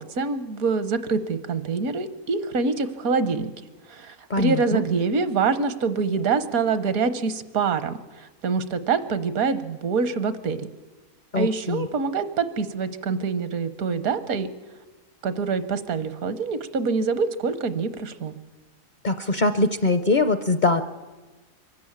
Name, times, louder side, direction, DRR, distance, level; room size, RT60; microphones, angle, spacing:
voice 1, 0.0-3.5 3.9-10.7 11.3-14.5 15.2-18.4, right 5 dB, 75° right, 13 dB, 1.4 m, -25 dB
voice 2, 4.3-4.8 11.3-11.9 19.0-20.8, left 2 dB, 45° left, 10 dB, 0.6 m, -22 dB
24.0 x 13.0 x 8.7 m, 1.2 s
omnidirectional pair, 1.5 m